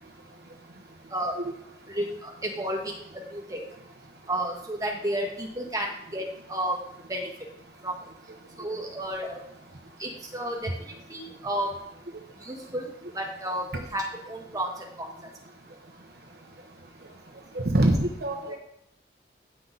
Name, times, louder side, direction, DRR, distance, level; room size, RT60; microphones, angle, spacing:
voice 1, 1.9-2.9 3.3-3.6 4.3-6.2 6.5-6.8 7.1-7.2 7.8-7.9 8.6-9.4 10.0-11.7 12.4-12.9 13.1-13.6 13.9-15.1, right 1 dB, 20° right, -1 dB, 1.5 m, -31 dB
voice 2, 17.5-18.6, right 1 dB, 60° right, 3 dB, 0.9 m, -24 dB
9.8 x 5.9 x 3.9 m, 0.78 s
head